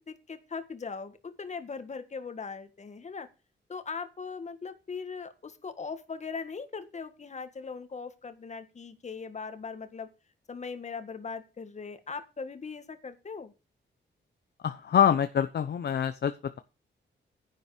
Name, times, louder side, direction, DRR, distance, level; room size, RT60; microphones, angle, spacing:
voice 1, 0.0-3.3 3.7-10.1 10.5-13.5, left 5 dB, 35° left, 10 dB, 1.7 m, -39 dB
voice 2, 14.6-16.3, left 8 dB, 60° left, 10 dB, 0.8 m, -25 dB
10.5 x 9.4 x 5.0 m, 0.30 s
wide cardioid pair, 135°, 19 cm